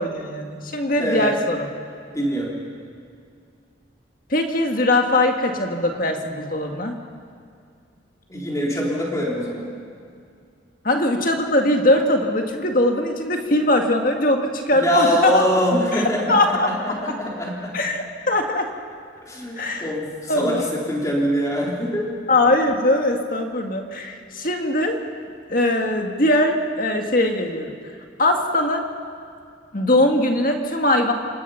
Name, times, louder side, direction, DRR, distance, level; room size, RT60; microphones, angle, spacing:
voice 1, 0.0-1.7 4.3-7.0 10.8-15.4 15.9-16.0 16.3-16.8 17.1-17.2 17.7-18.7 19.6-19.9 20.3-20.6 22.3-25.0 25.5-27.7 28.2-28.8 29.7-31.1, left 1 dB, 45° left, 3 dB, 1.9 m, -21 dB
voice 2, 1.0-1.4 2.1-2.5 8.3-9.7 14.7-17.8 19.3-22.1, equal, 15° left, -3 dB, 3.7 m, -23 dB
26.5 x 20.0 x 5.7 m, 2.3 s
head